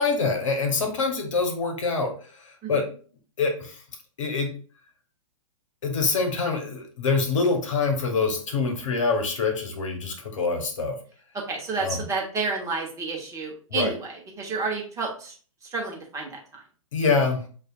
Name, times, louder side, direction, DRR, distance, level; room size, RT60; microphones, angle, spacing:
voice 1, 0.0-2.1 2.7-2.9 3.4-3.8 4.2-4.5 5.8-11.0 11.8-12.0 13.7-13.9 16.9-17.4, left 4 dB, 65° left, 4 dB, 1.0 m, -25 dB
voice 2, 11.3-15.4 15.6-16.6, right 4 dB, 15° right, 0 dB, 0.9 m, -30 dB
6.4 x 2.4 x 2.4 m, 0.41 s
figure-of-eight pair, 115°, 18 cm